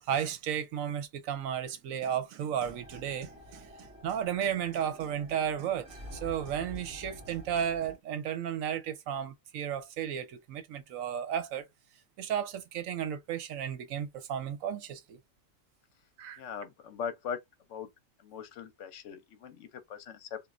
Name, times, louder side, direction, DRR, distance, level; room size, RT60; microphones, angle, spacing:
voice 1, 0.0-11.6 12.2-15.2 16.2-16.4, right 9 dB, 80° right, 1.0 m, -34 dB
sound 1, 2.6-7.9, left 1 dB, 5° right, 1.6 m, -48 dB
voice 2, 16.4-17.4 17.7-17.9 18.2-20.4, left 7 dB, 70° left, 0.9 m, -40 dB
3.0 x 2.4 x 2.4 m
omnidirectional pair, 1.4 m